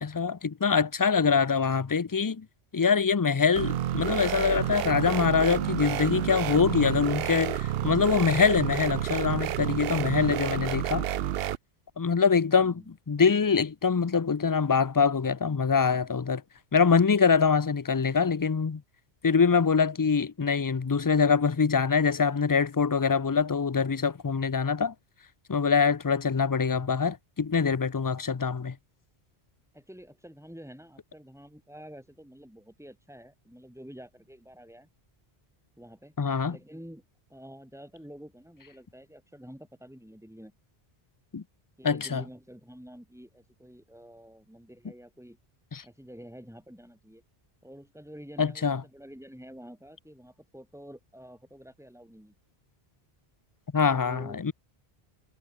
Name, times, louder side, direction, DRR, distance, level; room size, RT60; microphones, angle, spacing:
voice 1, 0.0-2.4 2.7-11.1 12.0-12.8 13.1-16.4 16.7-18.8 19.2-24.9 25.5-28.7 36.2-36.6 41.3-41.4 41.8-42.2 45.7-45.8 48.4-48.8 53.7-54.5, left 5 dB, 30° left, 0.3 m, -24 dB
sound 1, 3.6-11.6, right 12 dB, 70° right, 0.8 m, -30 dB
voice 2, 29.7-34.9 35.8-36.1 36.5-37.0 37.3-40.5 41.8-45.4 45.8-47.2 47.6-52.4 53.9-54.5, equal, 5° right, 3.7 m, -48 dB
omnidirectional pair, 1.1 m